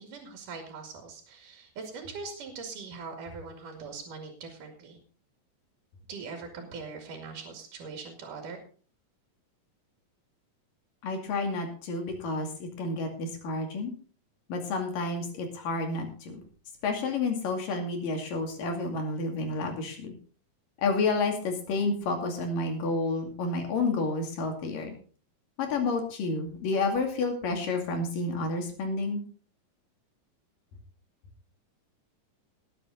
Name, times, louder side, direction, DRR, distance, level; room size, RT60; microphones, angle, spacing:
voice 1, 0.0-5.0 6.1-8.6, right 4 dB, 75° right, 3 dB, 3.8 m, -41 dB
voice 2, 11.0-13.9 14.5-16.4 16.8-20.1 20.8-24.9 25.6-29.2, left 3 dB, 80° left, 3 dB, 4.2 m, -30 dB
19.5 x 8.6 x 4.0 m, 0.41 s
omnidirectional pair, 3.8 m